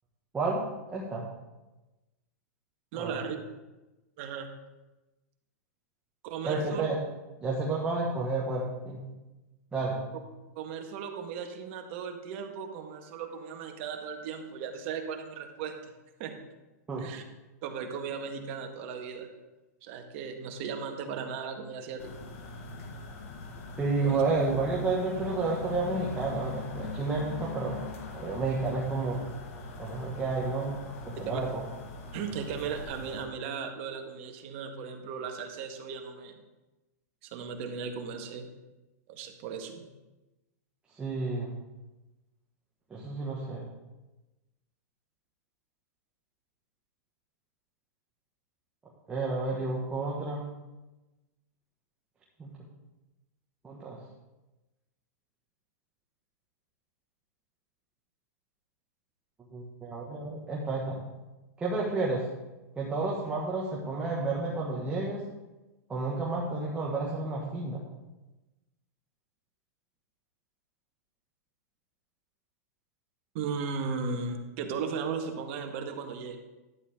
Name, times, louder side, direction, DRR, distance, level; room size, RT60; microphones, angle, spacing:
voice 1, 0.9-1.2 3.0-3.1 6.4-7.0 7.4-9.0 9.7-10.0 16.9-17.0 23.8-27.8 28.1-29.2 29.8-30.8 31.0-31.6 41.0-41.5 42.9-43.6 49.1-50.4 52.4-52.5 53.6-54.0 59.5-61.0 61.6-62.2 62.8-65.2 65.9-67.9, right 3 dB, 15° right, -4 dB, 1.7 m, -31 dB
voice 2, 2.9-3.4 4.2-4.5 6.2-6.9 10.5-15.9 16.2-16.3 17.0-17.2 17.6-19.3 19.8-22.1 24.0-24.2 31.1-31.4 32.1-36.4 37.2-38.5 39.1-39.9 73.3-76.4, right 6 dB, 50° right, 4 dB, 1.6 m, -36 dB
sound 1, 22.0-33.3, left 3 dB, 55° left, 1.8 m, -41 dB
12.0 x 9.4 x 3.7 m, 1.1 s
hypercardioid pair, 135°, 9 cm